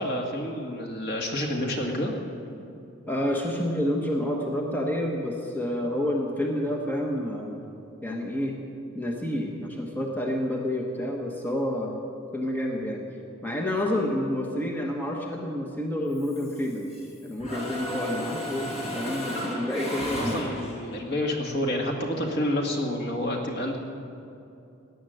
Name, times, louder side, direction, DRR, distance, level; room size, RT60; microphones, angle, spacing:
voice 1, 0.0-2.1 20.1-23.8, left 1 dB, 55° left, 1 dB, 2.1 m, -29 dB
voice 2, 3.1-7.6 8.0-8.6 8.9-12.0 12.3-13.1 13.4-16.9 17.2-20.4, left 1 dB, 10° left, 0 dB, 1.1 m, -29 dB
Mechanisms, 16.2-17.1 17.4-21.0, equal, 30° left, 2.3 m, -34 dB
17.0 x 9.7 x 7.8 m, 2.7 s
head